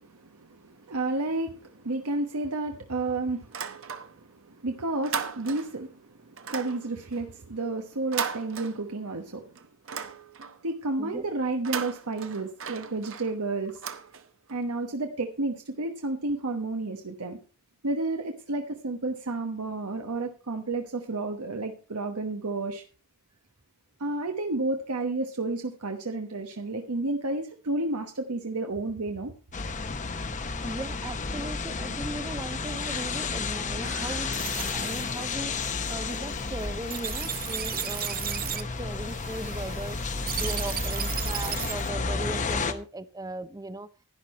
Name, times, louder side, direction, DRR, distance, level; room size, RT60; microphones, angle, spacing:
voice 1, 0.0-9.5 10.6-13.8 14.5-17.4 17.8-22.8 24.0-29.3, right 2 dB, 90° right, 4 dB, 1.1 m, -31 dB
sound 1, 3.4-4.4 4.7-5.9 6.4-9.2 9.6-10.7 11.5-14.6, right 6 dB, 60° right, 1.1 m, -37 dB
sound 2, 29.5-42.7, left 4 dB, 35° left, 0.8 m, -32 dB
voice 2, 30.6-40.0 40.4-43.9, right 2 dB, 15° right, 14 dB, 0.6 m, -38 dB
sound 3, 33.8-41.9, right 10 dB, 40° right, 0.9 m, -36 dB
11.0 x 10.5 x 4.3 m, 0.36 s
head